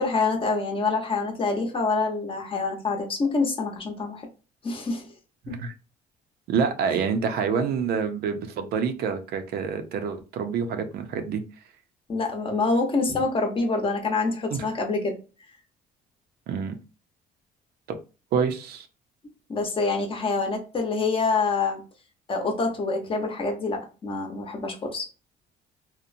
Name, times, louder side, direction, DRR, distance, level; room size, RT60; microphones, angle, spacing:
voice 1, 0.0-4.3 4.6-5.1 5.5-5.6 6.9-7.0 12.1-15.2 19.5-21.8 22.3-25.0, left 3 dB, 30° left, 0.8 m, -26 dB
voice 2, 6.5-11.4 14.5-14.6 16.5-16.8 18.3-18.9, right 6 dB, 65° right, 0.5 m, -27 dB
2.9 x 2.1 x 2.5 m
cardioid pair, 110°, 17 cm